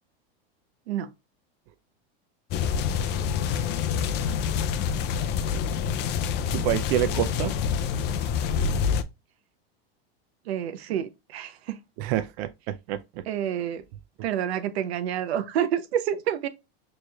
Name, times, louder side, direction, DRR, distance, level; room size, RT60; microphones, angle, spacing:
sound 1, 2.5-9.0, left 7 dB, 35° left, 0.4 m, -27 dB
voice 1, 6.5-7.5 12.0-13.0, right 12 dB, 55° right, 0.4 m, -27 dB
voice 2, 10.5-11.8 13.3-13.8 14.2-16.5, right 9 dB, 85° right, 0.7 m, -28 dB
4.4 x 3.1 x 2.3 m
supercardioid pair, 125°, 31 cm